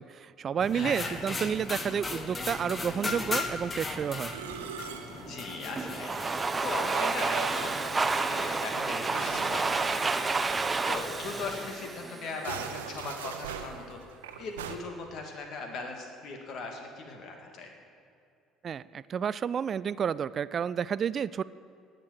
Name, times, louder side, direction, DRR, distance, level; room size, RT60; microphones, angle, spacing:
voice 1, 0.0-4.3 18.6-21.4, right 7 dB, 45° right, 18 dB, 0.3 m, -30 dB
sound 1, 0.6-11.7, left 3 dB, 30° left, 1.5 m, -39 dB
voice 2, 0.7-1.2 5.1-10.3 10.9-14.0 14.4-17.7, left 3 dB, 55° left, 3 dB, 2.3 m, -39 dB
Musical instrument, 3.9-10.8 11.1-11.2 11.5-11.7 12.3-14.8, right 7 dB, 85° right, 0.8 m, -43 dB
Domestic sounds home sounds, 5.8-12.6, right 3 dB, 25° right, 0.8 m, -30 dB
19.0 x 6.6 x 7.6 m, 2.4 s
hypercardioid pair, 60°, 0 cm